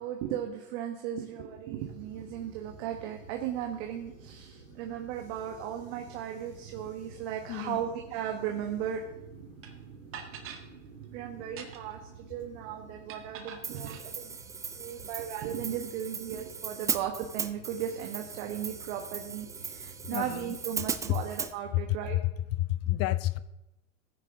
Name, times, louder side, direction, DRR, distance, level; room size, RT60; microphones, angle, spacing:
voice 1, 0.0-9.0 11.1-14.4 14.7-22.2, right 9 dB, 60° right, 3 dB, 1.5 m, -36 dB
sound 1, 1.8-21.4, right 5 dB, 75° right, 3.1 m, -51 dB
voice 2, 7.5-7.8 20.1-20.6 21.1-21.2 21.7-22.0 22.2-23.4, left 15 dB, 40° left, 16 dB, 0.7 m, -30 dB
sound 2, 9.6-9.7 10.1-10.7 11.4-12.0 13.1-14.1, right 7 dB, 35° right, 1.7 m, -44 dB
Hi-hat, 13.6-21.5, right 5 dB, 10° right, 0.3 m, -38 dB
15.5 x 9.7 x 3.8 m, 0.91 s
hypercardioid pair, 105°, 39 cm